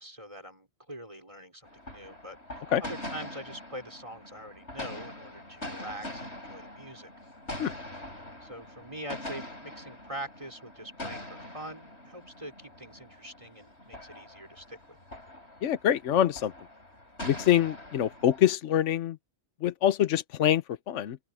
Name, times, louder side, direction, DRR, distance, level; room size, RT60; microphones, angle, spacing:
voice 1, 0.0-7.1 8.4-15.0, right 1 dB, 25° right, 4.8 m, -44 dB
sound 1, 1.6-18.5, left 1 dB, 60° left, 7.8 m, -43 dB
voice 2, 15.6-16.5 17.2-19.2 19.6-21.2, left 11 dB, 80° left, 1.1 m, -25 dB
open air
omnidirectional pair, 1.2 m